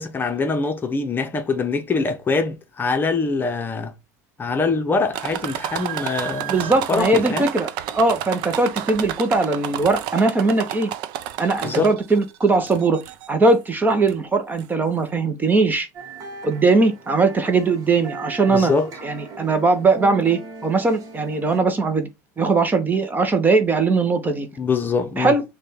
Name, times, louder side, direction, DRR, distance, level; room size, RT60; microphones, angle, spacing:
voice 1, 0.0-3.9 4.4-7.5 11.6-11.9 18.5-18.9 24.6-25.3, left 4 dB, 20° left, 0.8 m, -24 dB
sound 1, 5.1-12.2 12.7-13.3 14.1-14.2 14.6-14.7, right 11 dB, 55° right, 0.5 m, -30 dB
voice 2, 6.5-10.9 11.4-13.0 13.3-15.9 16.4-18.7 19.0-22.1 22.4-24.5 25.2-25.4, right 3 dB, 20° right, 0.7 m, -20 dB
sound 2, 15.9-21.6, right 4 dB, 40° right, 1.3 m, -39 dB
6.4 x 2.3 x 3.5 m
hypercardioid pair, 100°, 9 cm